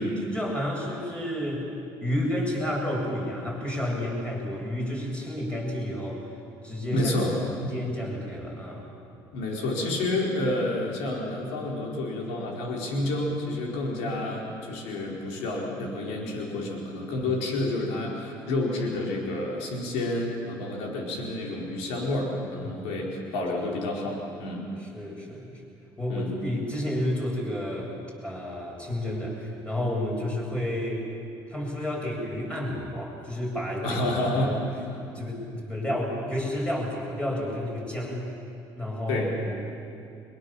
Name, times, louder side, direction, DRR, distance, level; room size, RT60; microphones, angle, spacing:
voice 1, 0.3-1.6 2.0-6.3 6.6-7.1 7.7-8.9 22.6-22.9 24.9-25.6 26.0-28.0 28.2-31.1 31.5-34.0 34.4-34.6 35.1-38.3 38.7-39.5, left 1 dB, 10° left, -2 dB, 7.9 m, -30 dB
voice 2, 6.9-7.7 9.3-24.6 26.1-26.3 33.8-34.6 34.9-35.0 39.1-39.3, left 2 dB, 80° left, -1 dB, 4.7 m, -29 dB
23.0 x 22.0 x 7.3 m, 2.6 s
supercardioid pair, 75°, 11 cm